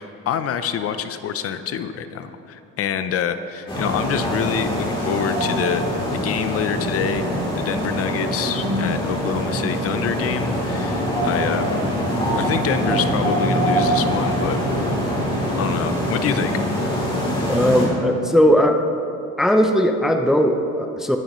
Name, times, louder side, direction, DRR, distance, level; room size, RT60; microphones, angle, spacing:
voice 1, 0.0-5.8 6.1-7.2 7.5-11.6 12.4-14.6 15.6-16.5, left 8 dB, 50° left, 10 dB, 0.6 m, -26 dB
sound 1, 3.7-17.9, equal, 15° left, 3.2 m, -23 dB
voice 2, 17.5-18.9 19.4-21.2, equal, ahead, 4 dB, 0.5 m, -18 dB
20.0 x 9.2 x 3.1 m, 2.6 s
cardioid pair, 160°, 31 cm